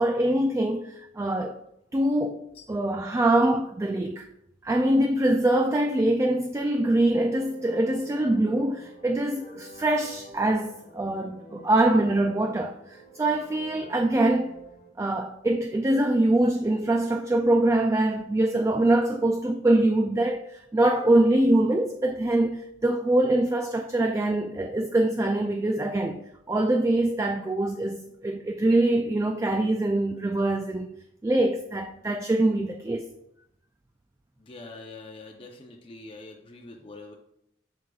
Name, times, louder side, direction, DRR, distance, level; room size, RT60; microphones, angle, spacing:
voice 1, 0.0-1.6 1.9-4.3 4.6-14.6 15.0-33.1, right 1 dB, 15° right, 0.3 m, -24 dB
sound 1, 7.0-14.9, right 3 dB, 50° left, 1.2 m, -48 dB
voice 2, 34.4-37.2, left 3 dB, 30° left, 0.7 m, -44 dB
7.9 x 6.3 x 2.3 m
head